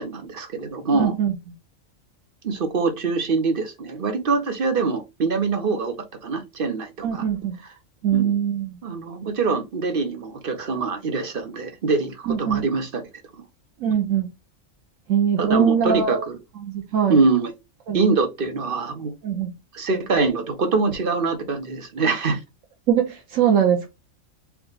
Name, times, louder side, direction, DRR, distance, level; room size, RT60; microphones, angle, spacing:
voice 1, 0.0-1.1 2.4-6.0 6.2-7.2 8.1-8.4 8.8-13.0 15.4-16.4 17.1-17.5 17.9-19.1 19.7-22.4, right 4 dB, 45° right, 1.0 m, -24 dB
voice 2, 0.9-1.3 7.0-7.6 8.0-8.8 12.3-12.6 13.8-14.3 15.1-16.3 16.6-17.2 17.9-18.0 19.2-19.5 22.9-23.9, right 8 dB, 80° right, 1.1 m, -22 dB
4.8 x 2.5 x 3.9 m
omnidirectional pair, 1.4 m